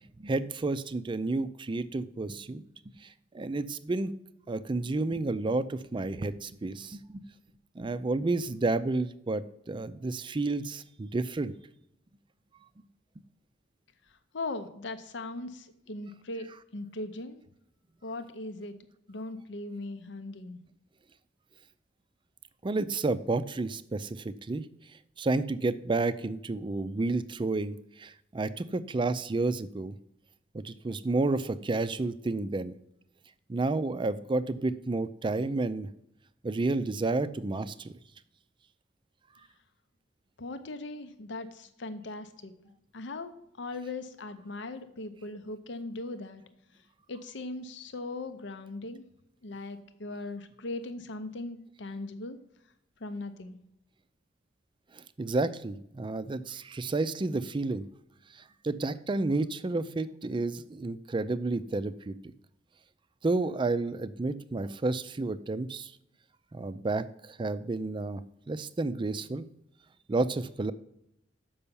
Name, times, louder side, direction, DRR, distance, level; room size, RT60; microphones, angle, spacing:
voice 1, 0.2-2.6 3.0-3.1 3.3-4.1 4.5-7.2 7.8-11.5 22.6-24.7 25.2-30.0 30.5-32.7 33.5-35.9 36.4-37.9 55.0-57.8 58.6-62.1 63.2-65.9 66.5-69.5 70.1-70.7, right 3 dB, 25° right, 13 dB, 0.4 m, -31 dB
voice 2, 14.3-16.5 16.7-17.4 18.0-18.7 19.1-20.6 40.4-42.5 42.9-46.4 47.1-49.0 49.4-52.4 53.0-53.6, left 2 dB, 70° left, 10 dB, 0.7 m, -39 dB
6.9 x 5.5 x 6.9 m, 0.78 s
head